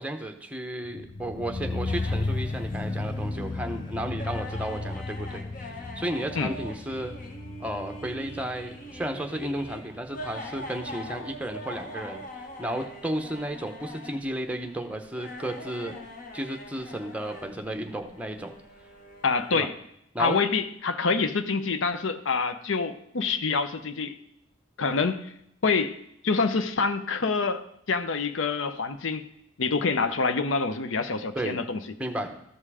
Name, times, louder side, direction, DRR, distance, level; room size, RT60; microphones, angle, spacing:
voice 1, 0.0-7.1 7.6-15.9 16.3-18.5 19.5-19.7 20.1-20.4 31.3-31.6 32.0-32.4, right 1 dB, 5° right, 4 dB, 0.8 m, -33 dB
sound 1, 0.8-11.9 12.1-12.2, left 2 dB, 25° left, 0.3 m, -35 dB
sound 2, 1.9-19.6, left 1 dB, 40° left, 1.1 m, -43 dB
voice 2, 19.2-19.7 20.2-24.1 24.8-25.3 25.6-26.0 26.2-29.2 29.6-31.8, left 4 dB, 70° left, 10 dB, 0.6 m, -26 dB
13.5 x 5.6 x 4.8 m, 0.76 s
head